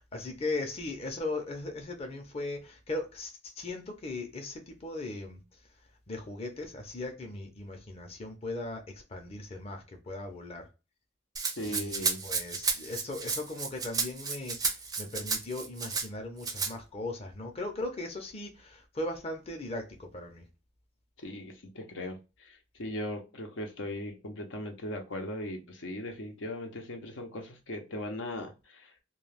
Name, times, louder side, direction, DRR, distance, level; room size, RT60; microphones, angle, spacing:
voice 1, 0.0-5.4 6.1-10.7 11.6-20.4, left 2 dB, 35° left, 0.6 m, -38 dB
Rattle (instrument), 11.4-16.1 16.4-16.7, right 5 dB, 20° right, 0.4 m, -32 dB
voice 2, 11.6-12.2 21.2-29.0, left 1 dB, 85° left, 0.7 m, -39 dB
2.3 x 2.3 x 3.2 m
head